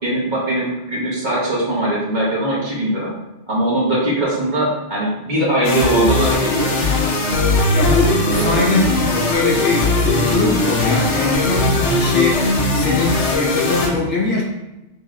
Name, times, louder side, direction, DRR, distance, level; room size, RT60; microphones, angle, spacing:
voice 1, 0.0-3.1 3.5-6.7 8.2-8.8, right 1 dB, 45° right, -6 dB, 1.4 m, -21 dB
sound 1, 5.6-13.9, left 2 dB, 85° left, 1.1 m, -19 dB
voice 2, 7.7-14.4, left 3 dB, 60° left, -3 dB, 1.2 m, -21 dB
6.1 x 3.0 x 2.4 m, 0.97 s
omnidirectional pair, 1.2 m